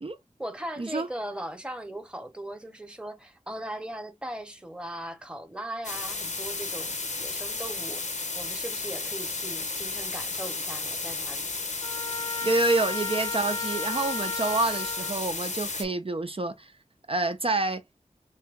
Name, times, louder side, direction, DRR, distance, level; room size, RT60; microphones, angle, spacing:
voice 1, 0.4-11.5, right 1 dB, 5° right, 1.0 m, -39 dB
sound 1, 5.8-15.8, left 3 dB, 65° left, 0.9 m, -33 dB
Trumpet, 11.8-15.2, left 3 dB, 35° left, 0.5 m, -35 dB
voice 2, 12.4-16.7 17.1-17.8, right 2 dB, 45° right, 0.6 m, -27 dB
3.4 x 2.9 x 3.4 m
wide cardioid pair, 50°, 13 cm